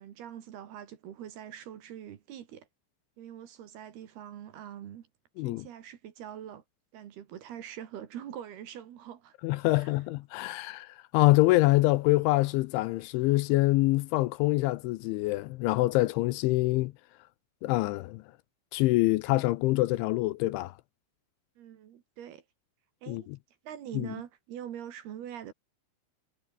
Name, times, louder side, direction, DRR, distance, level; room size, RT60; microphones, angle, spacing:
voice 1, 0.0-2.7 3.2-5.1 5.4-6.6 6.9-9.3 9.7-10.0 21.6-22.4 23.0-23.3 23.6-25.5, right 10 dB, 60° right, 3.4 m, -44 dB
voice 2, 9.4-16.9 17.6-18.2 18.7-20.7 23.1-23.2 23.9-24.1, left 19 dB, 80° left, 2.9 m, -25 dB
omnidirectional pair, 5.7 m